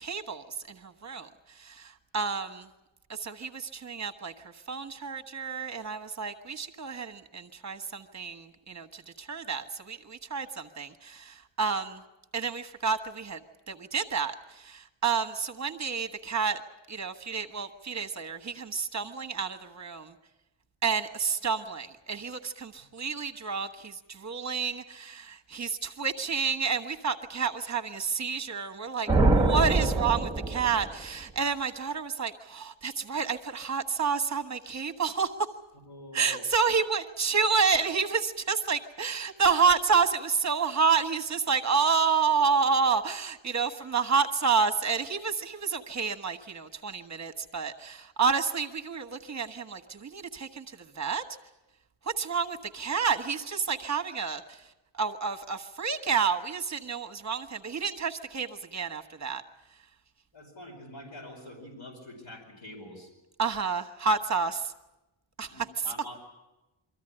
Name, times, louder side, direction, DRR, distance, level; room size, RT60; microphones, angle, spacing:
voice 1, 0.0-2.7 3.1-12.0 12.3-13.4 13.7-16.6 16.9-20.1 20.8-35.3 36.1-51.2 52.0-59.4 63.4-64.7 65.4-65.8, right 5 dB, 35° right, 7 dB, 1.3 m, -29 dB
sound 1, 29.1-31.0, right 2 dB, 10° right, 1.2 m, -24 dB
voice 2, 35.9-36.5 60.3-63.1 65.5-66.1, left 1 dB, 65° left, -2 dB, 5.1 m, -45 dB
24.0 x 14.5 x 10.0 m, 1.0 s
wide cardioid pair, 160°, 47 cm